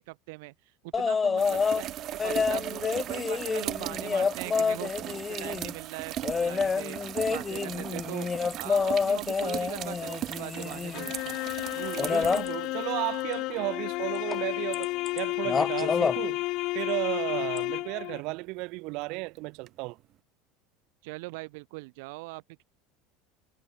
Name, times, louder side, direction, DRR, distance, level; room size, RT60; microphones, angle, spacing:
voice 1, 0.0-7.0 7.3-8.3 8.5-11.4 21.0-22.6, right 26 dB, 75° right, 3.3 m, -41 dB
sound 1, 0.9-1.8 2.2-5.7 6.2-11.1 12.0-12.5 14.3-14.4 14.7-15.2 15.5-16.2 17.6-17.7, left 5 dB, 15° left, 0.7 m, -28 dB
sound 2, 1.4-13.2 14.7-14.8 19.7-19.8, right 12 dB, 35° right, 3.0 m, -38 dB
sound 3, 10.9-18.2, left 21 dB, 50° left, 2.8 m, -32 dB
voice 2, 11.8-16.4 16.7-20.0, right 25 dB, 55° right, 4.1 m, -34 dB
cardioid pair, 155°, 0 cm